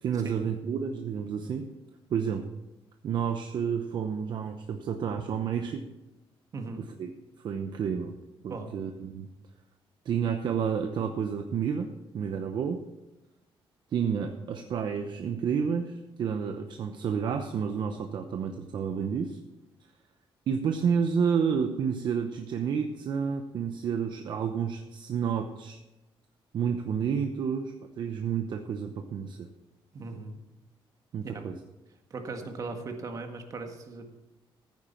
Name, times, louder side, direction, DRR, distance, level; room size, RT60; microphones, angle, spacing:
voice 1, 0.0-1.7 2.1-2.4 3.0-5.8 6.8-7.1 7.4-8.2 8.4-9.3 10.1-11.9 12.1-12.8 13.9-19.4 20.5-25.8 26.5-29.4 31.1-31.6, right 7 dB, 55° right, 5 dB, 0.8 m, -30 dB
voice 2, 6.5-6.9 8.5-8.7 29.9-30.4 31.2-31.4 32.1-34.1, right 3 dB, 40° right, 4 dB, 1.7 m, -38 dB
15.0 x 9.3 x 4.4 m, 1.0 s
cardioid pair, 170°, 9 cm